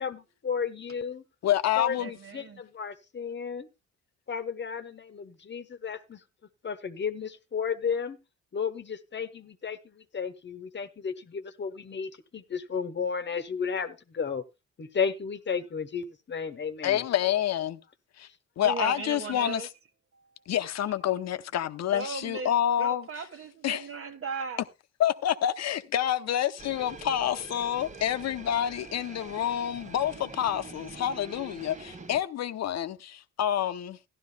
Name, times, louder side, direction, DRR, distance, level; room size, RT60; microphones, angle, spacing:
voice 1, 0.0-1.2 1.8-3.7 4.3-6.2 6.6-8.2 8.5-14.4 14.8-17.0, left 6 dB, 35° left, 1.1 m, -33 dB
voice 2, 1.4-2.1 16.8-17.8 18.2-18.3 18.6-19.7 20.5-23.2 23.6-23.9 25.0-34.0, left 10 dB, 60° left, 0.8 m, -28 dB
voice 3, 2.0-2.6 18.6-19.7 21.9-22.5 22.8-24.6, right 5 dB, 45° right, 1.4 m, -37 dB
sound 1, 26.6-32.2, right 3 dB, 25° right, 0.9 m, -45 dB
15.0 x 11.5 x 2.3 m
cardioid pair, 90°, 30 cm